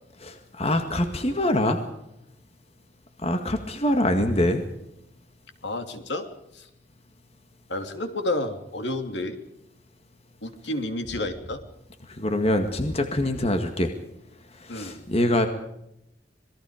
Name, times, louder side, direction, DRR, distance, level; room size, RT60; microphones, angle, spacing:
voice 1, 0.2-1.8 3.2-4.6 12.1-13.9 14.5-15.5, left 1 dB, 35° left, 6 dB, 1.9 m, -24 dB
voice 2, 5.6-6.7 7.7-9.4 10.4-11.6 14.7-15.0, left 1 dB, 70° left, 7 dB, 3.0 m, -31 dB
26.5 x 20.5 x 5.0 m, 0.83 s
head